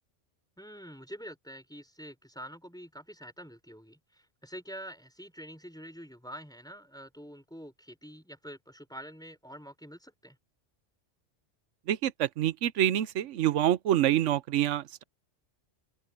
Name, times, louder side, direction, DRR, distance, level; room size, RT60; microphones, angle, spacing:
voice 1, 0.6-10.4, equal, 5° left, 4.7 m, -46 dB
voice 2, 11.9-15.0, right 12 dB, 80° right, 1.0 m, -26 dB
open air
omnidirectional pair, 1.3 m